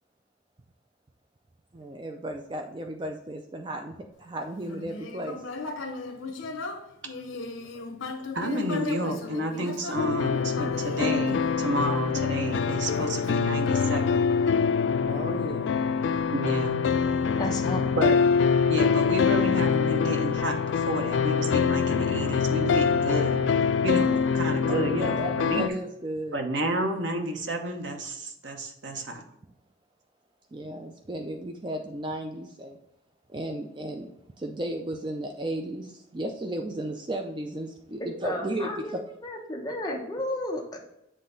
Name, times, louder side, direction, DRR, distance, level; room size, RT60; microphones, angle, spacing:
voice 1, 1.7-5.4 15.0-15.7 24.7-26.4 30.5-32.8 33.3-34.1 34.4-39.0, right 1 dB, 25° right, 3 dB, 0.4 m, -34 dB
Human voice, 4.6-12.0 12.6-14.0, left 3 dB, 85° left, 0.8 m, -37 dB
voice 2, 8.3-14.3 16.3-16.8 18.0-18.2 18.7-23.4 23.8-25.7 26.3-29.2, right 1 dB, 65° right, 4 dB, 0.9 m, -31 dB
sound 1, 10.0-25.7, left 6 dB, 65° left, 0.3 m, -24 dB
voice 3, 17.3-17.9 38.0-38.9 39.2-40.8, left 1 dB, 20° left, 0 dB, 0.9 m, -33 dB
7.4 x 3.3 x 3.9 m, 0.82 s
head